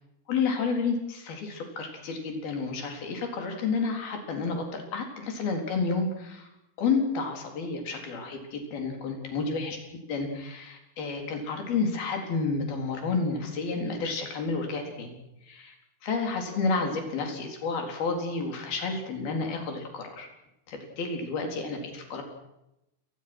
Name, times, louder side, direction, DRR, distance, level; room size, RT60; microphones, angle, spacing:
voice 1, 0.3-6.5 6.8-9.8 10.1-15.2 15.5-15.8 16.0-20.3 20.7-22.2, left 4 dB, 70° left, 3 dB, 5.8 m, -30 dB
28.0 x 20.5 x 6.3 m, 0.87 s
omnidirectional pair, 4.5 m